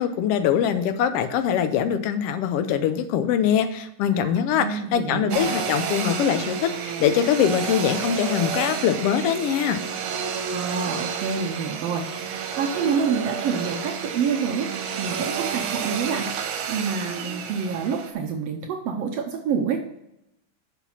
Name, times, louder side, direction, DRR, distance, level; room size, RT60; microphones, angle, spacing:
voice 1, 0.0-9.8, left 9 dB, 80° left, 9 dB, 1.4 m, -23 dB
voice 2, 4.1-5.5 10.5-19.8, right 6 dB, 70° right, 3 dB, 1.6 m, -28 dB
Domestic sounds home sounds, 5.3-18.1, right 7 dB, 90° right, 2.3 m, -30 dB
6.0 x 5.8 x 5.6 m, 0.82 s
omnidirectional pair, 3.4 m